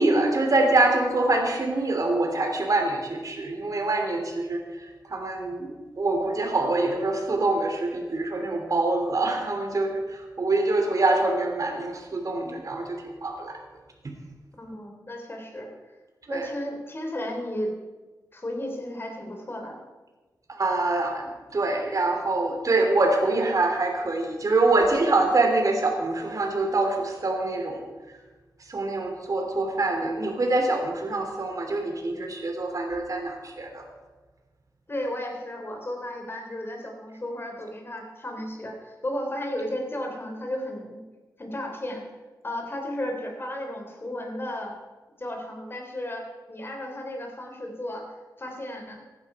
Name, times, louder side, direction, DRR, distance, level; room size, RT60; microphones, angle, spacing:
voice 1, 0.0-13.6 16.3-16.5 20.5-27.8 28.7-33.8, right 2 dB, 50° right, 4 dB, 2.9 m, -25 dB
voice 2, 14.5-15.7 16.3-17.7 18.3-19.8 34.9-41.0 41.4-42.0 42.4-44.8 45.2-48.1 48.4-49.0, left 1 dB, 30° left, 2 dB, 3.1 m, -34 dB
15.0 x 11.0 x 4.9 m, 1.3 s
wide cardioid pair, 80°, 7 cm